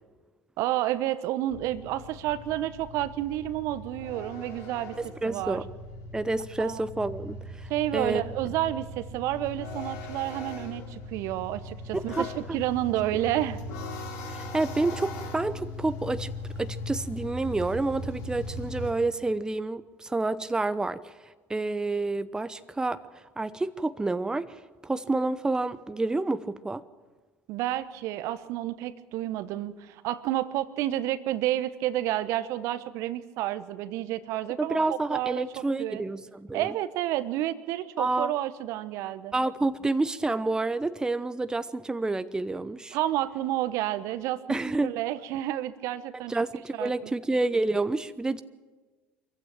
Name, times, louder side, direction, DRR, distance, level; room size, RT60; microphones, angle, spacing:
voice 1, 0.6-5.0 5.2-5.6 6.6-6.8 7.7-13.6 27.5-36.0 36.5-39.3 42.9-44.4 44.8-46.3 46.8-47.1, right 14 dB, 60° right, 14 dB, 1.1 m, -30 dB
sound 1, 1.5-18.9, left 1 dB, 60° left, 3.9 m, -39 dB
voice 2, 5.0-5.6 6.1-8.2 11.9-12.6 14.3-16.3 16.6-21.1 21.5-26.8 34.6-36.7 38.0-38.3 39.3-43.0 44.5-44.9 46.3-48.4, right 2 dB, 10° right, 13 dB, 0.9 m, -29 dB
24.5 x 15.0 x 9.0 m, 1.3 s
figure-of-eight pair, 65°, 6 cm